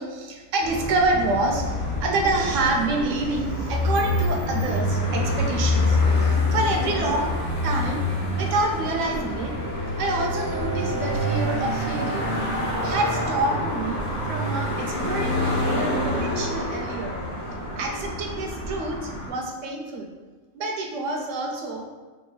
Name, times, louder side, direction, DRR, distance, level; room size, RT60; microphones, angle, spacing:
voice 1, 0.0-7.3 7.6-8.0 8.4-9.5 10.0-12.4 12.8-17.2 17.7-20.1 20.5-21.9, right 2 dB, 70° right, 1 dB, 1.0 m, -27 dB
sound 1, 0.6-19.3, left 1 dB, 55° left, 1.2 m, -26 dB
Bowed string instrument, 8.5-12.1, right 4 dB, 40° right, 0.6 m, -35 dB
3.8 x 2.5 x 3.9 m, 1.4 s
omnidirectional pair, 1.4 m